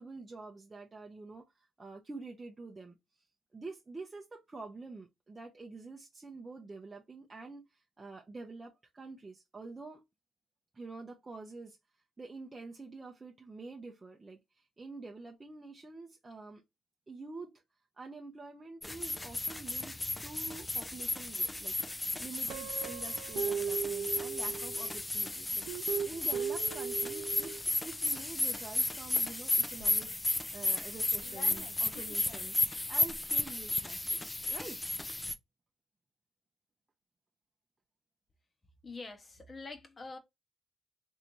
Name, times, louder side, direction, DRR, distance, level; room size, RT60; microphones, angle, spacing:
voice 1, 0.0-3.0 3.5-10.0 10.7-11.8 12.2-16.6 17.1-17.6 18.0-30.2 30.5-34.8, right 3 dB, 25° right, 0.6 m, -47 dB
sound 1, 18.8-35.3, left 2 dB, 15° left, 0.4 m, -34 dB
Guitar, 22.5-25.0 25.7-27.6, right 7 dB, 85° right, 0.4 m, -37 dB
sound 2, 29.7-30.3 30.7-35.3, left 5 dB, 85° left, 0.8 m, -53 dB
voice 2, 38.8-40.2, left 3 dB, 30° left, 0.8 m, -45 dB
3.3 x 2.6 x 2.9 m
cardioid pair, 90°, 0 cm